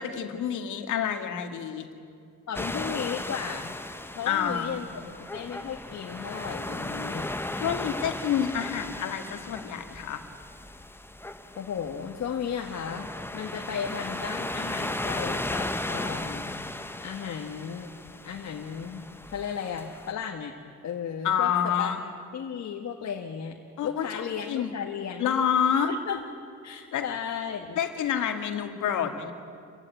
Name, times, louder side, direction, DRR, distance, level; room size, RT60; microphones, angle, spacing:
voice 1, 0.0-1.9 4.3-4.8 7.6-10.2 21.2-22.0 23.8-24.8 25.2-25.9 26.7-27.0 27.8-29.3, left 8 dB, 80° left, 5 dB, 2.1 m, -28 dB
voice 2, 2.5-3.8 4.2-7.4 11.6-16.5 17.0-17.9 18.2-20.5 20.8-21.9 22.3-25.4 25.9-26.2 26.6-27.8, left 7 dB, 60° left, 2 dB, 1.8 m, -35 dB
sound 1, 2.5-20.1, left 1 dB, 5° left, 1.2 m, -36 dB
28.5 x 15.5 x 9.2 m, 2.4 s
cardioid pair, 90°, 30 cm